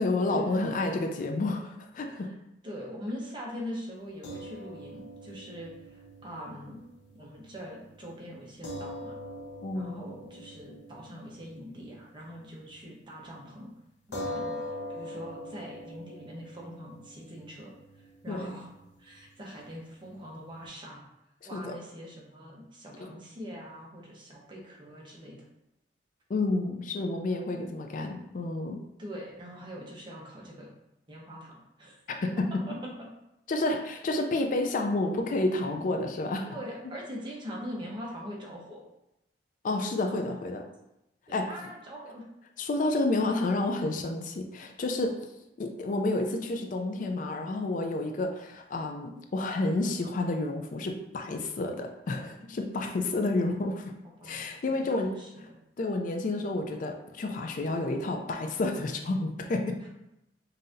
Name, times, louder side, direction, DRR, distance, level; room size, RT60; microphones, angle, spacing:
voice 1, 0.0-2.3 9.6-10.1 18.3-18.5 21.4-21.8 23.0-23.1 26.3-28.8 32.1-32.5 33.5-36.5 39.6-40.6 41.3-41.5 42.6-45.2 45.6-53.9 54.2-55.1 55.8-59.9, left 2 dB, 45° left, 4 dB, 0.4 m, -30 dB
voice 2, 2.6-6.8 7.2-9.2 9.7-13.7 14.1-18.7 19.0-21.1 21.4-25.4 29.0-30.7 31.1-32.0 32.7-33.1 36.5-38.8 40.0-40.2 41.3-42.2 54.2-55.6, equal, 25° right, -3 dB, 0.9 m, -43 dB
sound 1, 4.2-12.7 13.1-13.2 14.1-20.7, left 1 dB, 75° left, 0.8 m, -43 dB
5.5 x 2.7 x 2.6 m, 0.87 s
head